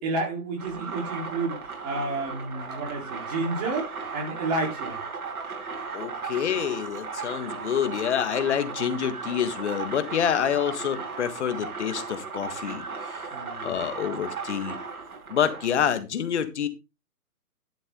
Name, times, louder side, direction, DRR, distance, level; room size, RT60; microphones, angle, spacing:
voice 1, 0.0-5.0 13.3-13.7, right 3 dB, 25° right, 3.9 m, -31 dB
sound 1, 0.6-15.8, right 5 dB, 70° right, 4.8 m, -36 dB
voice 2, 5.9-13.3 13.6-14.8 15.3-16.7, left 9 dB, 50° left, 1.6 m, -27 dB
12.0 x 7.1 x 3.9 m
hypercardioid pair, 150°, 45 cm